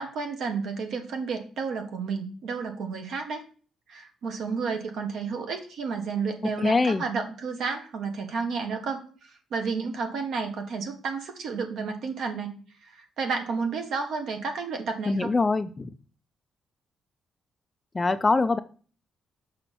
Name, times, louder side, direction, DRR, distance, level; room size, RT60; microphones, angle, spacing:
voice 1, 0.0-3.5 3.9-12.5 12.8-15.3, right 5 dB, 70° right, 5 dB, 1.5 m, -31 dB
voice 2, 6.6-7.0 15.1-15.9 17.9-18.6, left 3 dB, 20° left, 11 dB, 0.4 m, -23 dB
6.9 x 5.3 x 4.1 m, 0.40 s
cardioid pair, 165°, 0 cm